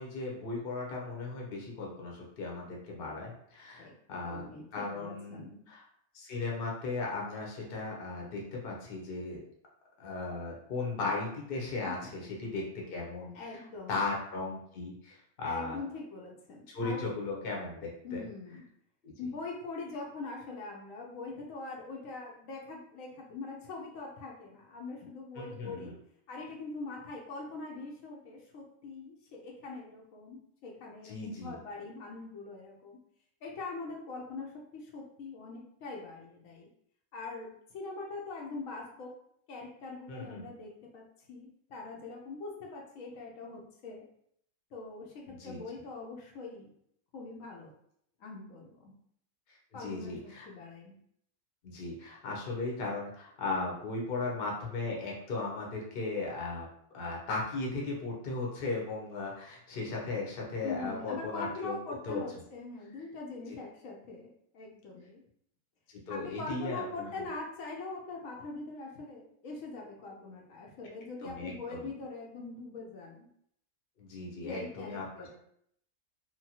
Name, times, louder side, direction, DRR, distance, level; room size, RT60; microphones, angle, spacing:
voice 1, 0.0-4.4 4.7-5.4 5.7-5.8 6.1-9.4 10.0-15.8 16.7-18.2 19.0-19.1 25.4-26.0 31.0-31.6 40.1-40.5 45.3-45.6 49.5-50.5 51.6-56.7 56.9-61.8 62.0-62.2 63.5-63.6 66.1-67.2 71.2-71.9 74.0-75.3, left 3 dB, 50° left, -2 dB, 0.8 m, -37 dB
voice 2, 4.2-5.6 12.0-12.2 13.3-14.0 15.4-17.1 18.0-18.6 19.2-25.9 26.3-33.0 33.4-36.7 37.1-39.1 39.5-44.0 44.7-46.7 47.1-47.7 48.2-48.9 49.7-51.0 60.6-65.2 66.1-73.3 74.4-75.3, left 3 dB, 75° left, -1 dB, 1.0 m, -43 dB
2.8 x 2.2 x 2.8 m, 0.69 s
omnidirectional pair, 1.4 m